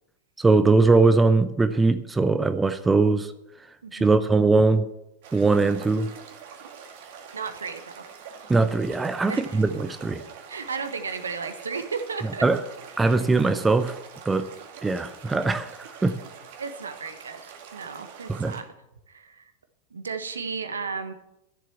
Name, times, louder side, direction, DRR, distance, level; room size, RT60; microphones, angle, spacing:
voice 1, 0.4-3.3 3.9-4.9 5.3-6.1 8.5-10.2 12.4-12.6 13.0-14.0 14.2-14.5 14.8-16.2 18.3-18.6, right 3 dB, 10° right, 11 dB, 0.7 m, -21 dB
voice 2, 3.8-4.2 7.3-8.0 9.3-9.4 10.5-12.4 16.6-18.6 19.1-19.4 19.9-21.1, right 5 dB, 70° right, 9 dB, 1.3 m, -34 dB
sound 1, 5.2-18.6, right 7 dB, 50° right, 2.1 m, -45 dB
13.5 x 7.6 x 7.1 m, 0.85 s
figure-of-eight pair, 90°, 0 cm